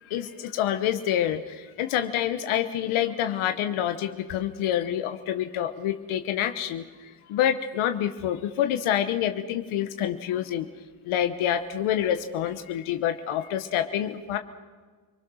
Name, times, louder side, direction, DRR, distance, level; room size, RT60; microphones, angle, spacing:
voice 1, 0.1-10.7 11.1-14.4, left 10 dB, 80° left, 8 dB, 1.2 m, -27 dB
29.5 x 20.0 x 6.4 m, 1.5 s
supercardioid pair, 65°, 48 cm